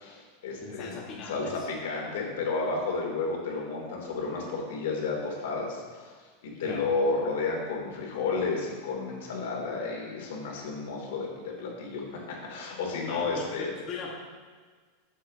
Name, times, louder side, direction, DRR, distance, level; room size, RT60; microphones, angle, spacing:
voice 1, 0.0-1.0 1.2-13.7, left 3 dB, 80° left, -1 dB, 2.7 m, -32 dB
voice 2, 0.6-1.5 6.6-6.9 13.1-14.1, left 4 dB, 30° left, -4 dB, 1.4 m, -39 dB
12.5 x 7.3 x 2.8 m, 1.5 s
supercardioid pair, 155°, 0 cm